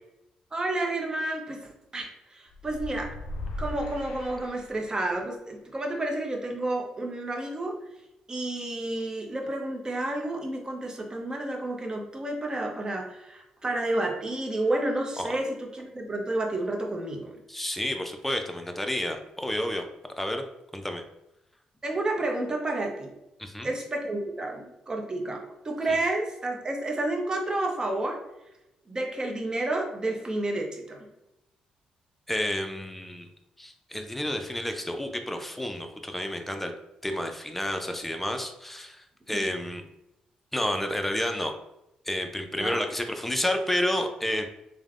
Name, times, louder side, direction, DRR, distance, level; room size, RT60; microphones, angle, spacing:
voice 1, 0.5-3.1 3.6-7.8 8.3-17.4 21.8-23.1 23.6-28.2 28.9-31.1 39.3-39.5 42.5-42.8, right 2 dB, 30° right, 1 dB, 0.7 m, -30 dB
sound 1, 2.5-5.2, left 2 dB, 80° left, 0.4 m, -38 dB
voice 2, 17.5-19.8 20.2-20.4 20.7-21.0 23.4-23.7 32.3-33.3 33.6-36.7 37.0-39.8 40.5-41.5 42.0-44.5, left 1 dB, 5° left, 5 dB, 0.4 m, -30 dB
3.2 x 2.1 x 2.4 m, 0.89 s
supercardioid pair, 65°, 3 cm